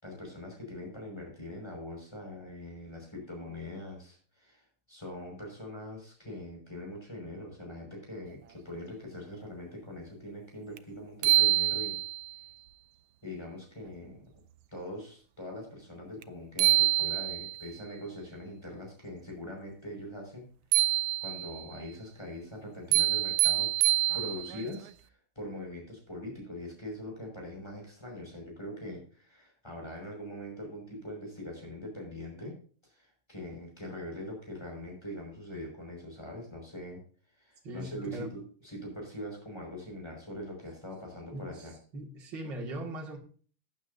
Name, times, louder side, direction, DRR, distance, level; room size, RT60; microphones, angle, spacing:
voice 1, 0.0-12.0 13.2-14.2 14.7-20.5 21.2-23.7 24.1-32.6 32.8-37.0 37.4-41.7, left 1 dB, 10° left, -1 dB, 5.6 m, -42 dB
sound 1, 10.8-10.9 11.2-12.3 16.2-16.3 16.6-17.7 20.7-21.6 22.9-24.7, right 17 dB, 90° right, 1.5 m, -26 dB
voice 2, 37.6-38.3 41.3-41.7 41.9-43.2, right 1 dB, 60° right, -1 dB, 2.9 m, -39 dB
15.0 x 9.4 x 2.7 m, 0.42 s
omnidirectional pair, 2.3 m